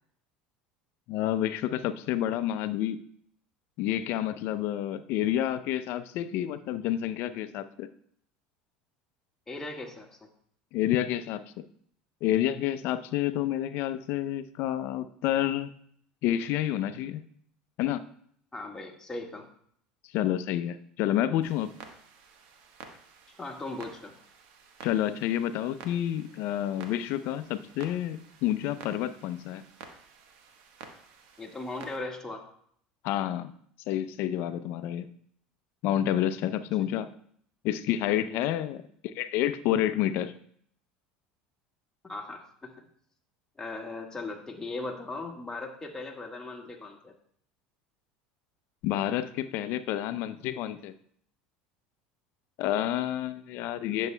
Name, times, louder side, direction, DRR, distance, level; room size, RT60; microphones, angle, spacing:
voice 1, 1.1-3.0 3.8-7.9 10.7-11.6 12.2-15.7 16.2-17.2 17.8-18.0 20.1-21.7 24.8-29.6 33.0-33.5 33.9-35.1 35.8-37.1 37.6-40.3 48.8-50.9 52.6-54.1, left 12 dB, 60° left, 12 dB, 0.5 m, -29 dB
voice 2, 9.5-10.3 18.5-19.4 23.4-24.1 31.4-32.4 38.0-38.4 42.0-42.9 43.6-47.1, left 2 dB, 15° left, 0 dB, 1.6 m, -38 dB
Clock, 21.4-32.0, right 6 dB, 65° right, 1.2 m, -51 dB
10.5 x 7.2 x 2.2 m, 0.63 s
hypercardioid pair, 90°, 4 cm